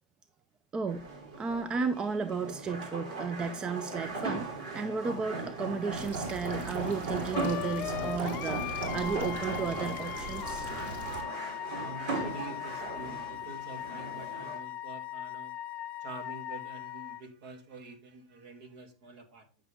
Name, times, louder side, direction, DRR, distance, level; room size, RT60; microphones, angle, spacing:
voice 1, 0.7-1.1 1.4-4.5 4.7-10.7, right 5 dB, 25° right, 0.6 m, -34 dB
sound 1, 0.9-14.6, right 3 dB, 75° right, 3.1 m, -38 dB
sound 2, 5.9-11.2, right 3 dB, 40° right, 2.6 m, -42 dB
Wind instrument woodwind instrument, 7.3-17.2, left 13 dB, 40° left, 0.5 m, -39 dB
voice 2, 11.2-15.5 16.0-19.5, right 2 dB, 60° right, 2.5 m, -47 dB
9.5 x 6.1 x 3.5 m
hypercardioid pair, 120°, 4 cm